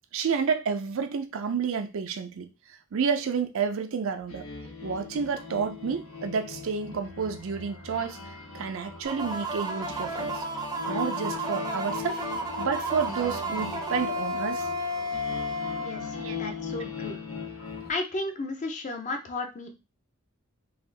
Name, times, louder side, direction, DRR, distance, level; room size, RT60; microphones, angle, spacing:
voice 1, 0.1-2.5 2.9-4.5 4.8-10.4 10.9-12.2 12.6-14.7 16.2-16.4, right 6 dB, 65° right, 0.4 m, -30 dB
sound 1, 4.3-17.9, left 5 dB, 80° left, 1.1 m, -39 dB
sound 2, 9.0-16.6, right 1 dB, 20° right, 0.5 m, -33 dB
voice 2, 15.8-17.2 17.9-19.7, left 2 dB, 35° left, 0.6 m, -34 dB
3.5 x 2.3 x 3.2 m
head